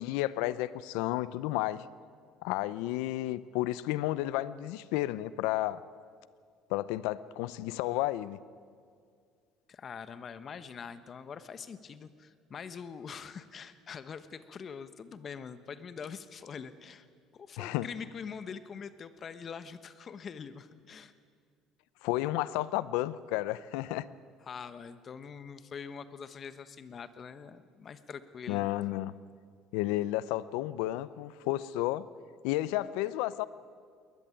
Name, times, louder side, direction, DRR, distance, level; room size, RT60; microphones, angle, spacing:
voice 1, 0.0-1.9 2.4-5.8 6.7-8.4 17.6-17.9 22.0-24.1 28.5-29.2 29.7-32.1 32.4-33.5, left 16 dB, 90° left, 17 dB, 0.7 m, -32 dB
voice 2, 9.7-17.1 17.3-21.1 24.4-28.7, left 6 dB, 35° left, 12 dB, 1.2 m, -44 dB
21.0 x 20.0 x 9.2 m, 2.1 s
cardioid pair, 125°, 0 cm